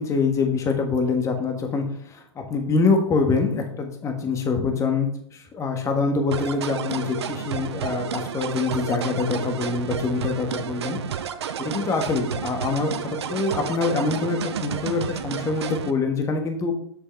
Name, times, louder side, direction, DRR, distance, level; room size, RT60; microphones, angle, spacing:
voice 1, 0.0-11.0 11.6-16.7, left 4 dB, 20° left, 4 dB, 1.4 m, -25 dB
sound 1, 6.3-15.9, right 8 dB, 65° right, 0.6 m, -31 dB
7.8 x 6.3 x 3.2 m, 0.64 s
figure-of-eight pair, 110°, 15 cm